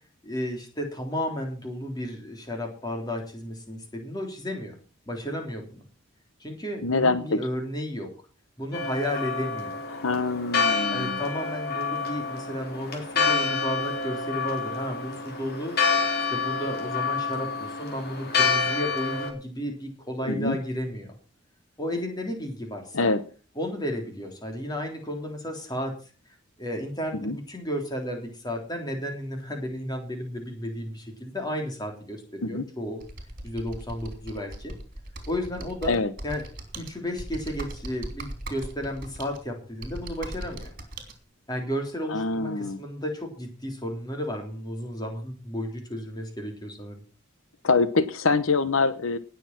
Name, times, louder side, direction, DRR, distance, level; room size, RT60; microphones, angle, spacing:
voice 1, 0.2-4.8 5.1-5.8 6.4-8.1 8.6-9.8 10.9-15.8 16.3-21.1 21.8-23.1 23.6-26.0 26.6-33.0 33.4-34.7 35.3-36.0 36.2-36.4 36.8-40.7 41.5-47.0, equal, 20° left, 2 dB, 3.5 m, -33 dB
voice 2, 6.8-7.4 9.9-11.2 20.2-20.6 22.9-23.2 27.1-27.4 32.4-32.6 35.9-36.1 42.1-42.8 47.6-49.2, left 3 dB, 85° left, 13 dB, 1.0 m, -25 dB
Church bell, 8.7-19.3, left 5 dB, 50° left, 3.7 m, -28 dB
Computer keyboard, 33.0-41.1, right 1 dB, 45° right, 3.3 m, -39 dB
18.5 x 7.0 x 6.0 m, 0.38 s
head